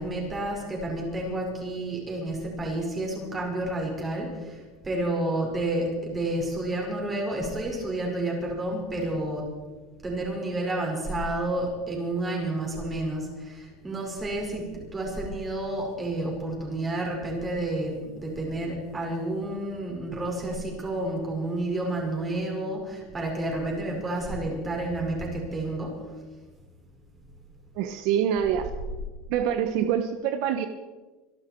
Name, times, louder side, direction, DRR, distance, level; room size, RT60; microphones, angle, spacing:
voice 1, 0.0-9.5 10.0-26.0, right 1 dB, 20° right, 0 dB, 5.4 m, -30 dB
voice 2, 27.8-28.7 29.3-30.7, right 9 dB, 65° right, 8 dB, 1.0 m, -25 dB
26.0 x 12.0 x 4.6 m, 1.3 s
supercardioid pair, 140°, 0 cm